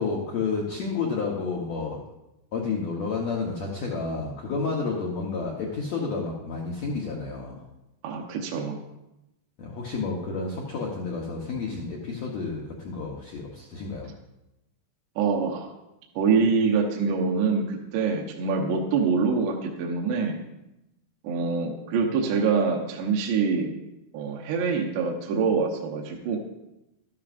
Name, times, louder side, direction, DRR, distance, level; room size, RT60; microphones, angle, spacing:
voice 1, 0.0-2.0 2.5-7.6 9.6-14.1, left 4 dB, 85° left, -2 dB, 1.5 m, -30 dB
voice 2, 8.0-8.8 15.2-15.7 16.2-20.4 21.2-23.7 24.1-26.4, right 5 dB, 80° right, 1 dB, 3.1 m, -25 dB
13.0 x 13.0 x 2.5 m, 0.91 s
omnidirectional pair, 4.8 m